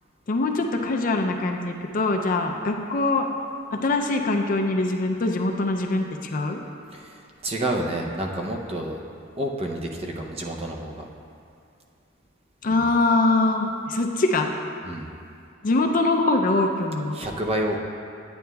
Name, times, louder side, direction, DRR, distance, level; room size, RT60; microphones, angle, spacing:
voice 1, 0.3-3.3 3.7-6.1 6.3-6.6 12.6-14.5 15.6-17.2, left 2 dB, 40° left, 3 dB, 0.4 m, -23 dB
voice 2, 6.9-9.0 9.4-11.0 12.7-12.8 14.8-15.1 17.1-17.8, right 1 dB, 30° right, 1 dB, 0.6 m, -29 dB
9.4 x 9.2 x 2.3 m, 2.5 s
head